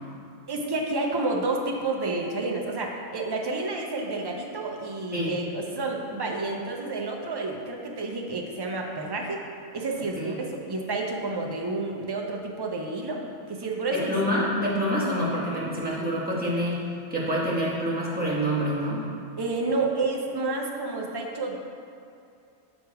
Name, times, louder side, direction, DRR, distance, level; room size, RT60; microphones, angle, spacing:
voice 1, 0.5-9.4 9.7-14.3 19.4-21.6, right 3 dB, 40° right, 0 dB, 0.3 m, -30 dB
voice 2, 13.9-19.1, equal, 5° right, -8 dB, 1.3 m, -27 dB
6.3 x 5.0 x 4.7 m, 2.5 s
omnidirectional pair, 1.4 m